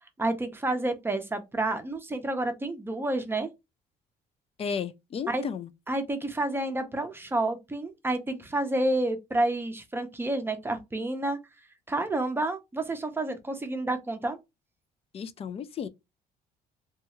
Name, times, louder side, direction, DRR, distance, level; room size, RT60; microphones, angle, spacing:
voice 1, 0.2-3.5 5.3-5.4 5.9-11.4 11.9-14.4, right 2 dB, 15° right, 0.6 m, -29 dB
voice 2, 4.6-5.7 15.1-15.9, left 7 dB, 35° left, 0.4 m, -33 dB
2.6 x 2.3 x 3.0 m
cardioid pair, 110°, 17 cm